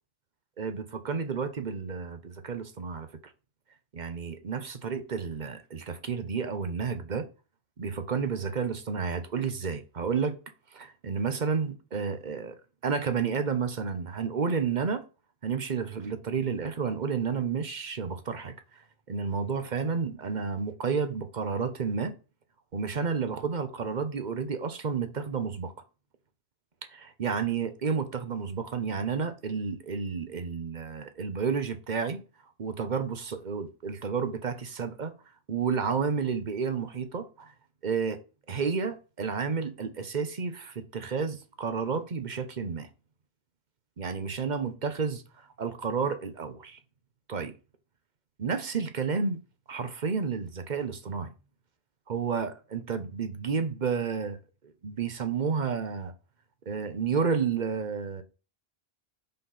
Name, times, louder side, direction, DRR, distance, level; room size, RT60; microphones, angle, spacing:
voice 1, 0.6-3.1 3.9-7.3 7.8-10.4 10.7-12.6 12.8-15.0 15.4-18.8 19.1-22.1 22.7-25.7 26.9-32.2 32.6-35.1 35.5-37.5 37.8-38.2 38.5-42.9 44.0-46.8 47.3-47.5 48.4-49.4 49.7-51.3 52.1-54.4 54.6-56.1 56.7-58.2, right 5 dB, 50° right, 0.9 m, -31 dB
5.3 x 4.2 x 5.7 m
omnidirectional pair, 1.1 m